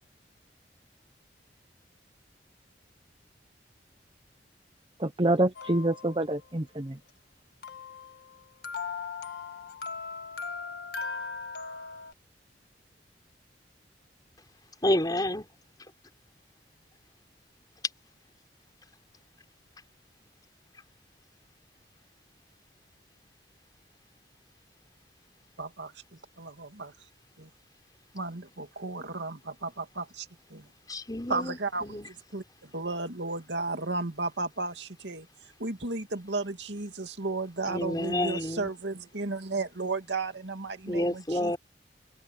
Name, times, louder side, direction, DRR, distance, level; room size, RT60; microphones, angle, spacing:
voice 1, 5.0-7.0, right 1 dB, 30° right, 0.9 m, -26 dB
sound 1, 5.6-6.5 7.6-12.1, left 4 dB, 60° left, 1.9 m, -39 dB
voice 2, 14.8-15.5 30.9-32.1 37.6-38.7 40.9-41.6, left 1 dB, 20° left, 5.6 m, -29 dB
voice 3, 25.6-25.9 26.4-26.9 27.4-27.5 28.1-30.7 31.3-31.9 32.3-35.3 35.6-41.5, right 3 dB, 80° right, 2.3 m, -34 dB
head